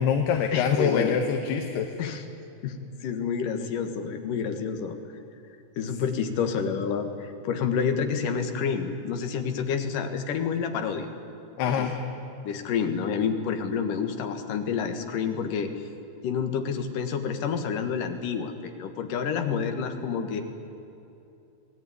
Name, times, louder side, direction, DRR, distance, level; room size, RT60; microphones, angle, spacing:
voice 1, 0.0-1.9 11.6-11.9, left 7 dB, 80° left, 4 dB, 3.2 m, -25 dB
voice 2, 0.5-1.2 2.0-2.2 2.6-5.0 5.8-11.1 11.7-11.9 12.4-15.7 16.2-20.4, left 6 dB, 60° left, 6 dB, 3.0 m, -29 dB
25.5 x 18.5 x 9.6 m, 2.7 s
omnidirectional pair, 4.7 m